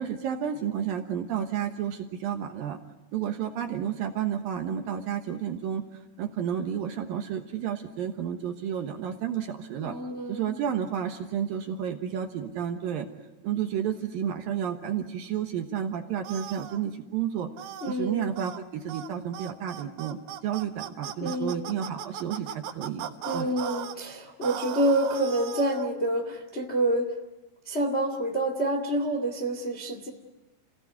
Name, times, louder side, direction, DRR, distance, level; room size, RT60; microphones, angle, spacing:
voice 1, 0.0-2.8 3.1-5.8 6.2-9.9 10.3-13.1 13.4-17.5 17.9-20.2 20.4-23.5, right 9 dB, 65° right, 5 dB, 2.4 m, -31 dB
voice 2, 9.8-10.6 17.8-18.3 21.2-21.6 23.2-27.2 27.6-30.1, right 1 dB, 40° left, 5 dB, 0.9 m, -28 dB
sound 1, 16.2-16.8 17.6-17.9 18.4-18.6 18.9-19.1 19.3-24.0 24.4-25.9, right 9 dB, 90° right, 3.8 m, -38 dB
30.0 x 17.5 x 9.6 m, 1.0 s
omnidirectional pair, 5.2 m